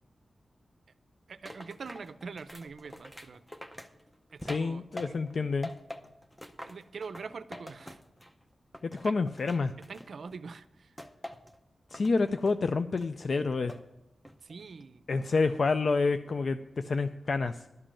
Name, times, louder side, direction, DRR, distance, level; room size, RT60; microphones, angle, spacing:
voice 1, 1.3-3.4 4.3-5.2 6.6-8.0 8.9-9.2 9.9-11.0 14.4-15.4, right 5 dB, 70° right, 13 dB, 0.5 m, -44 dB
sound 1, 1.5-5.4 5.6-8.4 8.7-10.4 11.0-11.6 11.9-12.6 13.0-13.9 14.3-14.7, left 1 dB, 5° left, 0.7 m, -46 dB
voice 2, 4.4-5.7 8.8-9.7 11.9-13.7 15.1-17.6, left 4 dB, 60° left, 10 dB, 0.4 m, -28 dB
12.0 x 5.2 x 8.6 m, 0.95 s
wide cardioid pair, 125°, 0 cm